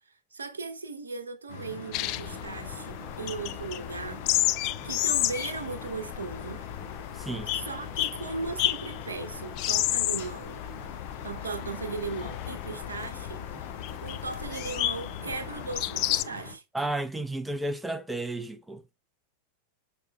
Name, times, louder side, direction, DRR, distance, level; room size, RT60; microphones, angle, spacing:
voice 1, 0.0-4.2 4.8-6.6 7.5-10.6 11.2-13.4 14.0-16.6, right 4 dB, 75° right, 1.0 m, -37 dB
sound 1, 1.5-16.5, left 3 dB, 60° left, 3.6 m, -44 dB
sound 2, 1.9-16.2, left 16 dB, 40° left, 0.4 m, -32 dB
voice 2, 7.1-7.5 16.7-18.8, right 2 dB, 5° right, 0.7 m, -32 dB
6.3 x 5.7 x 3.2 m
figure-of-eight pair, 90°, 0 cm